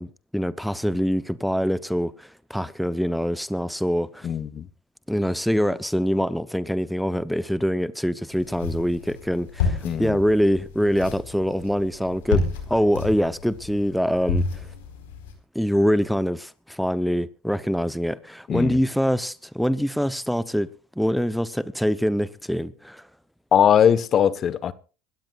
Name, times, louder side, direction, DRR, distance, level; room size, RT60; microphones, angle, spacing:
voice 1, 0.0-4.3 5.1-14.7 15.5-20.7 21.0-23.1, equal, ahead, 0.7 m, -24 dB
voice 2, 4.2-4.7 9.8-10.2 18.5-18.8 23.5-24.7, left 8 dB, 45° left, 1.1 m, -20 dB
sound 1, 8.3-15.3, left 4 dB, 85° left, 4.4 m, -30 dB
26.0 x 13.5 x 2.4 m
hypercardioid pair, 85°, 0 cm